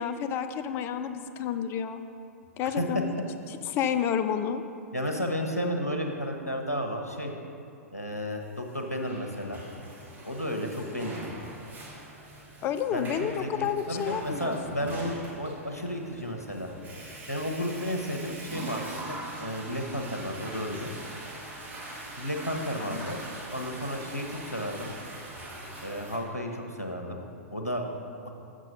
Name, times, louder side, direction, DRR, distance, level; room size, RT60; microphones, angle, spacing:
voice 1, 0.0-2.0 2.6-3.1 3.7-4.6 12.6-14.6 22.8-23.0, left 8 dB, 30° left, 10 dB, 0.4 m, -30 dB
voice 2, 4.9-7.3 7.9-9.6 10.2-11.2 12.9-16.7 17.3-20.9 22.2-23.2 23.5-24.9 25.8-27.2 27.5-28.3, equal, 90° left, 2 dB, 0.9 m, -33 dB
Water / Toilet flush, 8.7-26.2, right 2 dB, 20° right, 1.6 m, -42 dB
7.5 x 6.4 x 5.3 m, 2.6 s
figure-of-eight pair, 105°, 8 cm